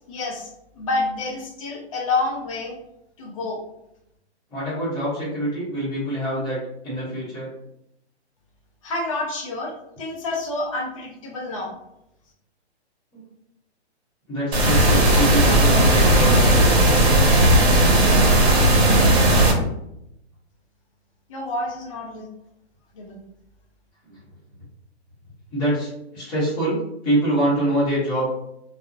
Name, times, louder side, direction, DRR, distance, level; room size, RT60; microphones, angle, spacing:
voice 1, 0.1-0.5 0.8-2.8 3.2-3.6 8.8-9.7 10.0-11.8 21.3-22.3 22.9-23.2, left 2 dB, 30° left, -2 dB, 0.4 m, -28 dB
voice 2, 4.5-7.5 13.1-13.2 14.3-16.7 24.0-24.2 25.5-28.2, right 1 dB, 10° left, -11 dB, 0.8 m, -25 dB
sound 1, 14.5-19.5, right 1 dB, 70° right, 0.8 m, -16 dB
2.5 x 2.0 x 2.5 m, 0.81 s
hypercardioid pair, 160°, 33 cm